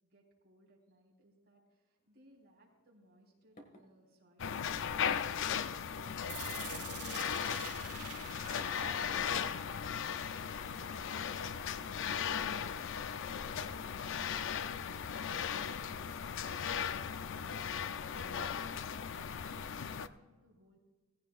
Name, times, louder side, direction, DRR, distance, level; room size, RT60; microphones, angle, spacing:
voice 1, 0.0-5.4 16.7-20.8, equal, 45° right, -2 dB, 3.7 m, -65 dB
sound 1, 2.0-9.3, equal, 40° left, 1.9 m, -63 dB
sound 2, 4.4-20.1, left 7 dB, 60° left, 0.5 m, -37 dB
sound 3, 6.3-12.3, right 10 dB, 80° right, 1.1 m, -49 dB
18.0 x 15.5 x 2.5 m, 1.3 s
head